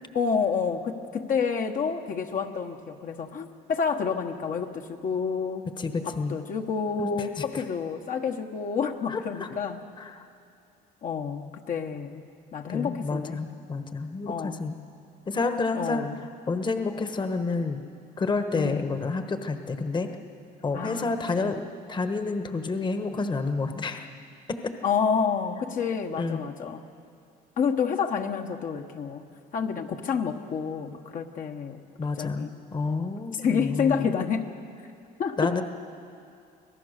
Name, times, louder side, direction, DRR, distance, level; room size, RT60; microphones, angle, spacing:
voice 1, 0.1-5.7 6.0-9.8 11.0-12.2 12.5-13.4 14.2-14.6 15.7-16.2 18.5-18.9 20.7-21.7 24.8-26.9 27.6-29.2 29.5-31.8 32.2-32.5 33.4-34.5 35.2-35.6, left 6 dB, 50° left, 4 dB, 1.2 m, -29 dB
voice 2, 5.8-6.4 7.0-7.6 9.1-9.5 10.0-10.3 12.7-14.8 15.3-16.1 16.5-17.8 18.2-20.1 20.6-21.6 21.9-24.1 24.5-24.7 26.1-26.4 32.0-34.1 35.4-35.6, left 3 dB, 25° left, 7 dB, 1.2 m, -29 dB
25.5 x 17.0 x 6.6 m, 2.4 s
cardioid pair, 110°, 17 cm